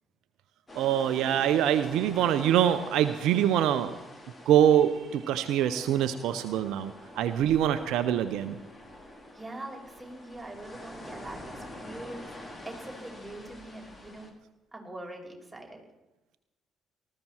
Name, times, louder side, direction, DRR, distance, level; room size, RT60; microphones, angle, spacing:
sound 1, 0.7-14.3, left 1 dB, 25° left, 4.0 m, -46 dB
voice 1, 0.8-3.9 4.5-8.6, right 10 dB, 65° right, 11 dB, 0.7 m, -24 dB
voice 2, 9.1-12.3 12.6-14.3 14.7-15.8, right 1 dB, 10° right, 0 dB, 5.6 m, -43 dB
19.0 x 14.5 x 4.4 m, 1.0 s
hypercardioid pair, 50°, 0 cm